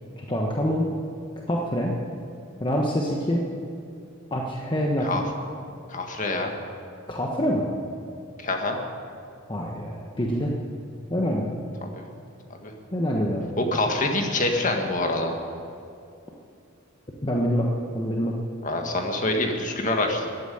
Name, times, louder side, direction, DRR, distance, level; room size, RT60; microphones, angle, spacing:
voice 1, 0.2-0.9 1.5-1.9 2.6-3.4 4.3-5.2 7.1-7.7 9.5-10.5 11.1-11.6 12.9-13.5 17.2-17.7 17.9-18.4, equal, 25° left, -1 dB, 1.2 m, -25 dB
voice 2, 5.9-6.5 8.4-8.8 11.8-12.0 12.6-12.7 13.6-15.3 18.6-20.3, left 2 dB, 40° left, 3 dB, 1.7 m, -26 dB
14.5 x 9.3 x 10.0 m, 2.5 s
head